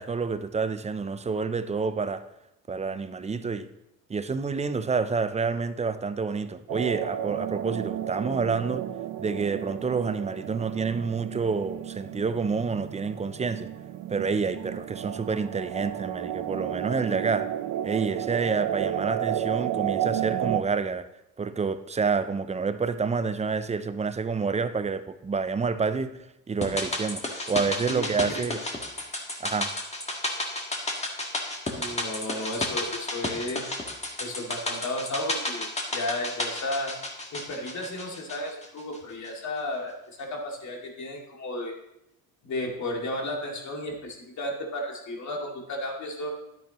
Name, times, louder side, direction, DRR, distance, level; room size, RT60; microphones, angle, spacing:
voice 1, 0.0-2.2 2.7-3.7 4.1-8.8 9.2-13.7 14.1-17.5 17.8-21.1 21.4-26.2 26.5-27.2 27.5-28.6 29.4-29.7, right 5 dB, 20° right, 0.5 m, -28 dB
sound 1, 6.7-20.6, right 11 dB, 60° right, 0.8 m, -32 dB
sound 2, 26.6-39.0 39.2-39.3, left 1 dB, 15° left, 1.7 m, -32 dB
voice 2, 27.9-28.4 31.7-33.6 34.2-36.9 37.3-41.7 42.4-46.3, left 1 dB, 45° left, 2.5 m, -33 dB
10.0 x 8.7 x 3.0 m
supercardioid pair, 90°, 38 cm